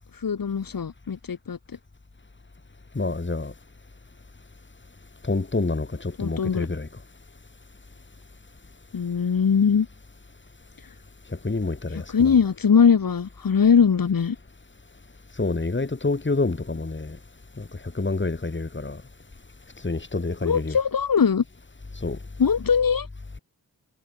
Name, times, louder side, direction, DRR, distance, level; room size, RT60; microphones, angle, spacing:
voice 1, 0.1-1.6 6.2-6.7 8.9-9.9 11.9-14.4 20.4-21.4 22.4-23.1, left 6 dB, 75° left, 3.5 m, -21 dB
voice 2, 2.9-3.5 5.2-6.9 11.4-12.4 15.4-17.2 17.6-17.7 17.9-19.0 19.8-20.8 22.0-22.2, left 3 dB, 35° left, 6.0 m, -27 dB
wide cardioid pair, 85°, 34 cm